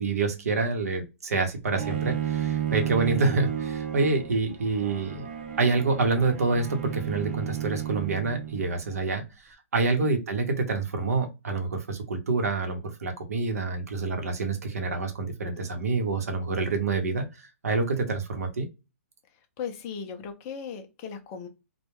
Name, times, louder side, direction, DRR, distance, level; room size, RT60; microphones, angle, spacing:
voice 1, 0.0-5.3 5.6-18.7, right 3 dB, 90° right, 4 dB, 0.8 m, -27 dB
Bowed string instrument, 1.8-8.8, right 9 dB, 40° right, 0.6 m, -32 dB
voice 2, 19.6-21.5, left 7 dB, 20° left, 5 dB, 0.4 m, -37 dB
2.2 x 2.1 x 3.0 m, 0.26 s
hypercardioid pair, 170°, 8 cm